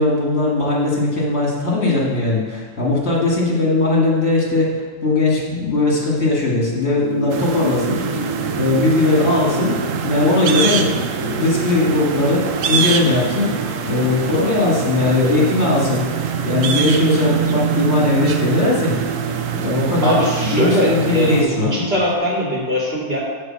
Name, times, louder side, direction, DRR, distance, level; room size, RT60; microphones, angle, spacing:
voice 1, 0.0-8.2 8.5-9.8 10.0-13.5 13.8-16.0 16.4-19.0 19.5-21.8, left 2 dB, 55° left, -4 dB, 2.4 m, -19 dB
sound 1, 7.0-22.1, right 3 dB, 25° right, 0.8 m, -30 dB
sound 2, 7.3-21.4, right 7 dB, 75° right, 1.1 m, -24 dB
voice 2, 20.0-23.2, equal, 50° right, -5 dB, 2.4 m, -20 dB
10.5 x 4.0 x 7.6 m, 1.5 s
omnidirectional pair, 1.4 m